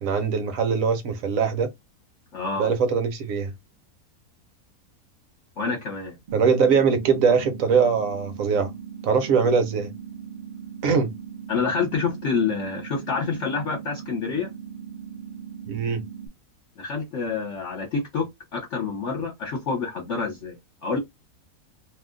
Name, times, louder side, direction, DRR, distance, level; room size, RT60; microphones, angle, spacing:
voice 1, 0.0-1.7 2.6-3.5 6.3-8.7 9.0-9.9 10.8-11.1 15.7-16.0, right 6 dB, 65° right, 1.1 m, -22 dB
voice 2, 2.3-2.7 5.6-6.2 11.5-14.5 16.8-21.0, left 5 dB, 55° left, 1.2 m, -28 dB
sound 1, 6.3-16.3, right 8 dB, 85° right, 0.4 m, -39 dB
2.7 x 2.1 x 3.7 m
omnidirectional pair, 1.6 m